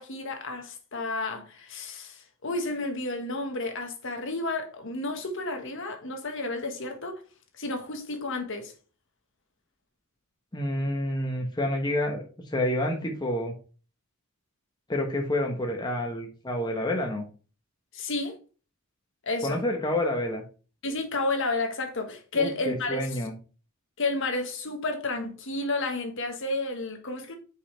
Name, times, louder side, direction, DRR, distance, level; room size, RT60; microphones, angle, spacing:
voice 1, 0.0-7.2 7.6-8.7 17.9-18.4 19.2-19.6 20.8-23.0 24.0-27.3, left 2 dB, 60° left, 1.4 m, -31 dB
voice 2, 10.5-12.2 12.5-13.5 14.9-17.2 19.4-20.4 22.3-23.3, left 1 dB, 20° left, 1.1 m, -28 dB
5.4 x 5.1 x 4.4 m
head